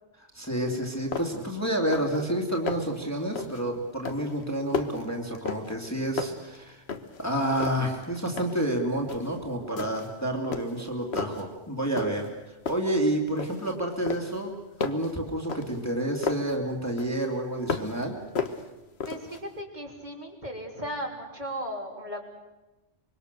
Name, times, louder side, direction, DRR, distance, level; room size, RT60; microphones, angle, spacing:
voice 1, 0.3-6.8 7.2-14.5 14.8-18.2, right 1 dB, 15° left, 0 dB, 2.5 m, -29 dB
sound 1, 0.7-0.8 1.1-1.5 1.8-2.2 2.5-3.0 3.4-3.7 4.0-5.9 6.2-7.2 7.6-8.7 9.1-9.4 9.8-10.2 10.5-11.5 12.0-12.4 12.7-13.7 14.1-16.6 17.0-18.0 18.4-19.4, left 5 dB, 65° left, 1.6 m, -34 dB
voice 2, 9.2-9.7 19.0-22.2, equal, 40° right, -1 dB, 3.7 m, -37 dB
25.0 x 23.0 x 6.7 m, 1.1 s
omnidirectional pair, 1.2 m